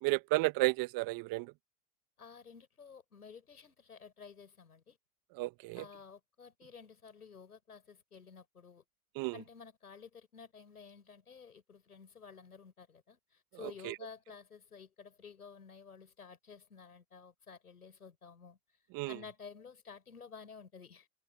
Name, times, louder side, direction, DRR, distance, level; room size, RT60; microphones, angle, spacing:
voice 1, 0.0-1.5 5.3-5.8 9.1-9.4 13.6-13.9 18.9-19.2, right 23 dB, 50° right, 1.5 m, -32 dB
voice 2, 2.2-5.0 5.7-8.8 9.3-18.6 19.1-21.1, left 6 dB, 90° left, 5.6 m, -53 dB
hypercardioid pair, 80°, 43 cm